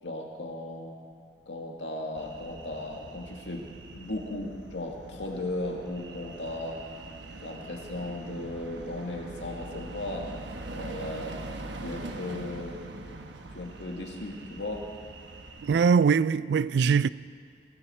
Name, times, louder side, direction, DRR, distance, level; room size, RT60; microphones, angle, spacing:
voice 1, 0.0-0.9 1.5-3.6 3.9-6.8 7.4-10.3 10.7-11.3 11.8-12.8 13.5-14.8, left 1 dB, 90° left, 2.0 m, -36 dB
sound 1, 2.2-15.9, right 2 dB, 90° right, 1.1 m, -43 dB
voice 2, 15.6-17.1, right 6 dB, 65° right, 0.3 m, -22 dB
19.5 x 14.0 x 4.4 m
head